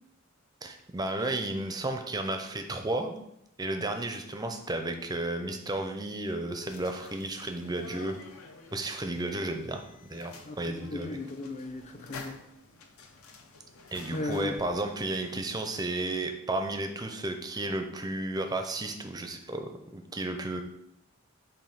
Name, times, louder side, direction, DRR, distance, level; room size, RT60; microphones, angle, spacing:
voice 1, 0.6-3.1 3.6-8.2 8.7-11.2 13.9-20.6, right 2 dB, 15° right, 5 dB, 0.5 m, -33 dB
sound 1, 6.6-15.4, left 4 dB, 70° left, 0.8 m, -50 dB
voice 2, 10.4-12.4 14.1-14.6, left 2 dB, 30° left, 6 dB, 0.5 m, -36 dB
7.4 x 2.7 x 5.5 m, 0.80 s
head